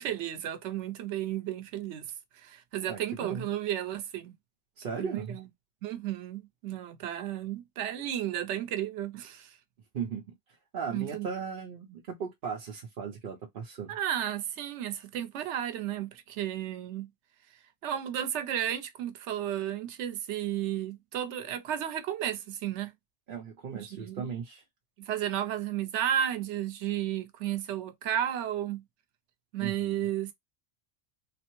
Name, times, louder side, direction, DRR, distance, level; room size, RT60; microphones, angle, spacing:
voice 1, 0.0-2.0 2.3-4.3 5.0-5.4 5.8-9.6 10.9-11.3 13.9-17.1 17.8-22.9 23.7-24.3 25.0-28.8 29.5-30.3, right 10 dB, 90° right, 0.9 m, -33 dB
voice 2, 2.9-3.5 4.8-5.4 9.9-10.2 10.7-13.9 23.3-24.6 29.6-30.1, right 6 dB, 55° right, 0.8 m, -37 dB
3.3 x 2.0 x 2.9 m
omnidirectional pair, 1.1 m